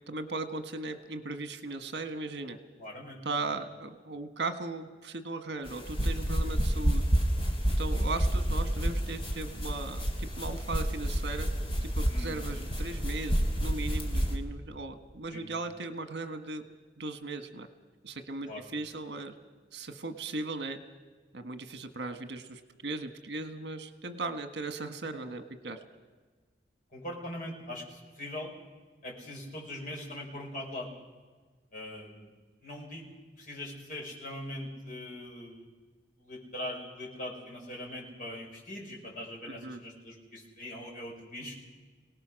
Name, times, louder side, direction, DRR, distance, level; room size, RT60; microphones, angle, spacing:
voice 1, 0.1-2.6 3.2-7.0 7.8-11.5 11.8-16.6 17.0-17.7 18.0-19.3 19.7-20.8 21.3-25.8 39.5-39.8, right 3 dB, 75° right, 8 dB, 1.5 m, -37 dB
voice 2, 2.8-3.2 12.1-12.5 15.3-15.5 18.5-18.6 26.9-28.5 29.0-30.9 31.7-32.3 32.6-33.1 33.4-35.6 36.2-41.5, left 1 dB, 50° left, -1 dB, 5.4 m, -41 dB
sound 1, 5.7-14.3, equal, 30° left, 2.6 m, -29 dB
24.5 x 18.0 x 6.4 m, 1.4 s
head